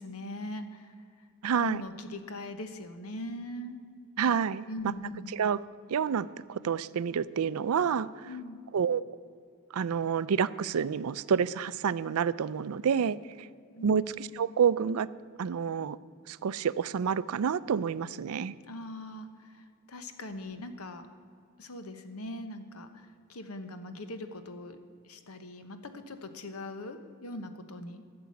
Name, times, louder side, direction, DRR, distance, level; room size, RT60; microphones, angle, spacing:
voice 1, 0.0-1.3 1.6-3.8 4.7-5.3 8.2-8.6 13.7-13.9 18.6-21.1 21.6-28.0, left 1 dB, 85° left, 9 dB, 1.1 m, -41 dB
voice 2, 1.4-1.8 4.2-4.7 5.3-5.6 5.9-8.3 8.7-9.0 9.7-13.5 13.8-15.1 15.4-16.0 16.3-18.5, right 7 dB, 85° right, 18 dB, 0.4 m, -28 dB
13.5 x 6.9 x 8.4 m, 2.3 s
head